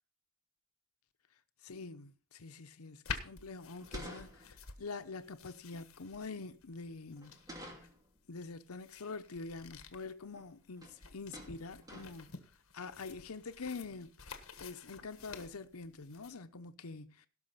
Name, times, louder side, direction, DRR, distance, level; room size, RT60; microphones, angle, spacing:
voice 1, 1.6-7.4 8.3-12.3 12.7-17.3, left 4 dB, 90° left, 0.8 m, -46 dB
sound 1, 3.0-16.3, left 5 dB, 65° left, 1.5 m, -49 dB
sound 2, 3.8-4.8 7.2-8.1 9.8-9.9 10.2-10.5 10.8-11.0 11.3-12.4, equal, 15° right, 2.6 m, -50 dB
17.0 x 6.3 x 5.7 m
head